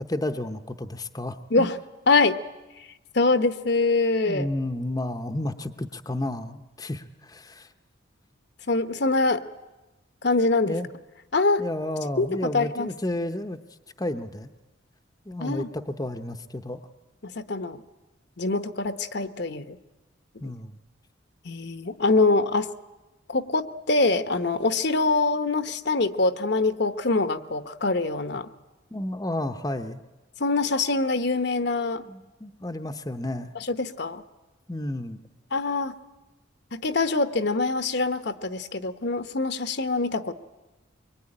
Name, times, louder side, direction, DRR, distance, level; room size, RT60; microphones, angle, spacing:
voice 1, 0.0-1.7 4.3-7.7 10.7-10.9 11.6-13.6 14.0-14.5 15.3-16.8 20.4-20.8 28.9-30.0 32.1-33.5 34.7-35.2, left 1 dB, 20° left, 7 dB, 0.8 m, -31 dB
voice 2, 2.1-2.4 3.1-4.5 8.7-9.4 10.2-10.8 11.3-11.6 12.2-12.3 12.5-12.9 15.4-15.7 17.2-17.8 18.4-19.8 20.3-20.5 21.4-22.7 23.3-28.5 30.4-32.0 33.7-34.2 35.5-36.0 36.7-40.3, left 3 dB, 55° left, 11 dB, 1.0 m, -24 dB
23.5 x 23.0 x 9.9 m, 1.1 s
head